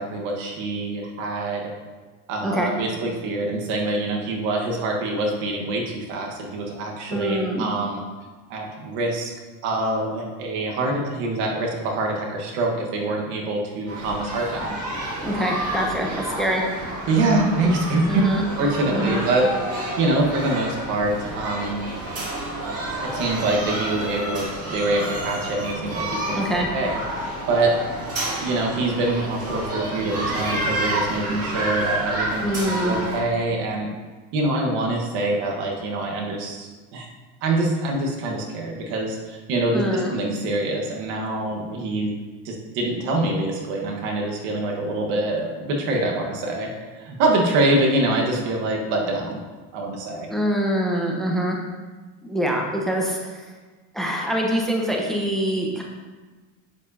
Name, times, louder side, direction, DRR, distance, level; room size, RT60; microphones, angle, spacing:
voice 1, 0.0-1.7 2.3-8.0 8.5-9.3 9.6-14.7 17.1-18.0 18.6-21.8 23.1-27.7 28.3-33.9 34.3-37.1 37.4-42.1 42.4-46.7 47.0-49.4 49.7-50.3, right 2 dB, 80° right, 0 dB, 1.5 m, -25 dB
voice 2, 7.1-7.7 15.2-16.6 18.1-18.4 18.9-19.2 26.3-26.7 32.4-33.0 39.7-40.1 50.3-51.6 52.2-53.5 53.9-55.8, equal, ahead, -1 dB, 1.0 m, -24 dB
sound 1, 13.9-33.2, right 1 dB, 35° right, 2.0 m, -29 dB
8.1 x 7.1 x 2.8 m, 1.3 s
supercardioid pair, 115°, 40 cm